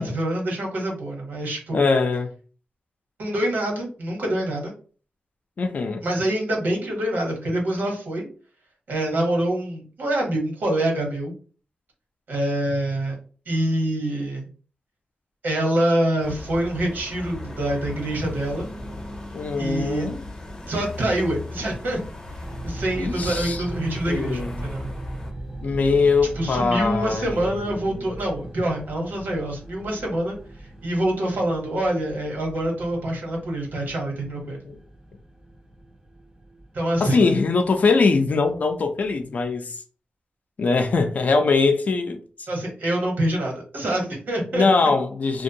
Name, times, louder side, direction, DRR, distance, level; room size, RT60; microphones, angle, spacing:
voice 1, 0.0-1.8 3.2-4.7 6.0-8.3 8.9-11.3 12.3-13.1 13.5-14.5 15.4-18.7 19.6-20.1 20.7-22.0 22.6-24.9 26.3-34.6 36.7-37.3 42.5-44.9, right 1 dB, 85° right, 1.0 m, -25 dB
voice 2, 1.7-2.3 5.6-6.1 19.3-20.1 23.0-23.6 24.1-24.6 25.6-28.0 34.7-34.8 37.0-39.8 40.6-42.2 44.5-45.4, left 4 dB, 55° left, 0.4 m, -22 dB
sound 1, 16.2-25.3, left 2 dB, 20° left, 0.7 m, -37 dB
sound 2, 22.4-39.5, right 1 dB, 20° right, 0.5 m, -39 dB
2.5 x 2.2 x 2.7 m
wide cardioid pair, 105°, 3 cm